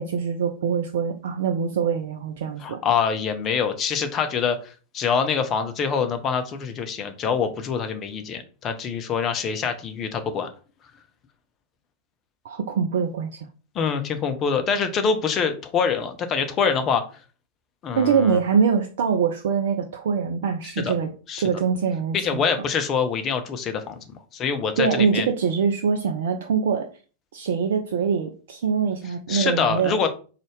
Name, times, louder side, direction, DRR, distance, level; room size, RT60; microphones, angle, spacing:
voice 1, 0.0-2.8 12.4-13.4 18.0-21.1 21.4-22.4 24.8-26.9 27.3-30.0, right 6 dB, 60° right, 4 dB, 0.4 m, -23 dB
voice 2, 2.6-10.5 13.7-17.0 17.8-18.4 20.8-20.9 21.3-21.4 22.1-24.0 24.3-25.3 29.3-30.1, left 6 dB, 30° left, 7 dB, 0.6 m, -25 dB
3.9 x 2.4 x 3.2 m, 0.37 s
figure-of-eight pair, 90°, 0 cm